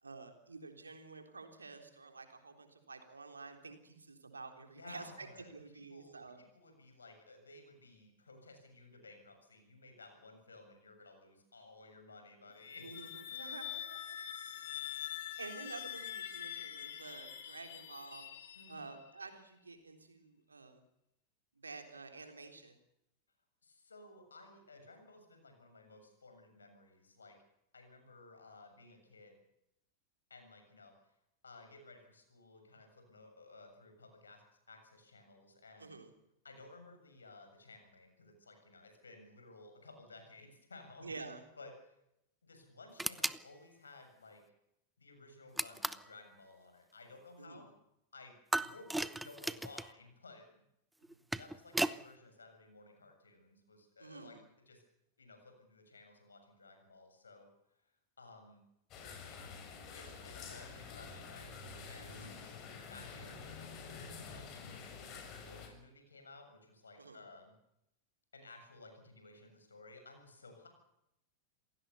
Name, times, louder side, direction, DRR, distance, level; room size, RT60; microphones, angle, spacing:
voice 1, 0.0-6.4 12.8-14.2 14.7-18.3 18.7-20.8 21.6-22.8 35.8-36.1 41.0-41.4 47.4-47.7 51.1-51.2 54.0-54.4 62.1-62.4 67.0-67.2, right 3 dB, 75° right, 6 dB, 3.6 m, -50 dB
voice 2, 4.7-12.9 18.6-18.8 23.6-27.4 27.7-29.4 30.3-30.9 31.4-35.9 36.4-41.1 41.6-41.7 42.4-44.4 45.0-47.7 48.1-50.6 51.4-54.8 55.2-57.5 57.8-57.9 58.2-58.6 59.9-61.6 61.9-62.4 62.9-67.5 68.3-70.7, left 3 dB, 75° left, 6 dB, 7.2 m, -56 dB
sound 1, 12.5-19.1, left 10 dB, 55° left, 3.5 m, -45 dB
sound 2, 43.0-43.4 45.6-46.1 48.5-49.9 51.0-52.0, right 1 dB, 5° right, 0.8 m, -36 dB
sound 3, 58.9-65.7, left 5 dB, 35° left, 6.6 m, -48 dB
27.5 x 17.5 x 7.1 m, 0.82 s
figure-of-eight pair, 90°, 0 cm